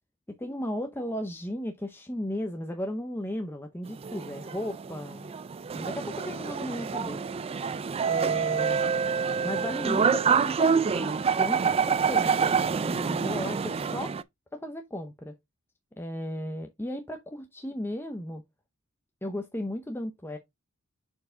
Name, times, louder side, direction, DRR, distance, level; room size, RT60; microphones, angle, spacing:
voice 1, 0.3-5.3 5.7-7.2 8.0-8.8 9.4-14.1 14.5-15.3 16.0-18.4 19.2-20.4, equal, 10° left, 0.7 m, -35 dB
sound 1, 3.9-14.2, right 6 dB, 25° right, 0.3 m, -27 dB
6.5 x 4.6 x 3.8 m
head